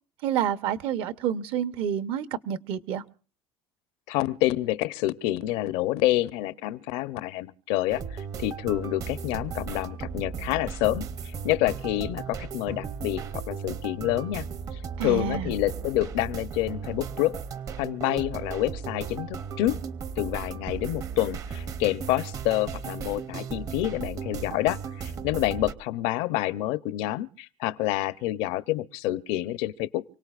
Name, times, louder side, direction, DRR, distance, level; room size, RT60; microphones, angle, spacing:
voice 1, 0.2-3.0 15.0-15.5, right 9 dB, 65° right, 0.8 m, -28 dB
voice 2, 4.1-14.4 15.0-17.4 17.8-19.8 20.2-30.0, left 16 dB, 80° left, 0.7 m, -28 dB
sound 1, 7.9-25.7, right 6 dB, 35° right, 0.6 m, -36 dB
28.5 x 18.0 x 2.4 m
cardioid pair, 150°, 10 cm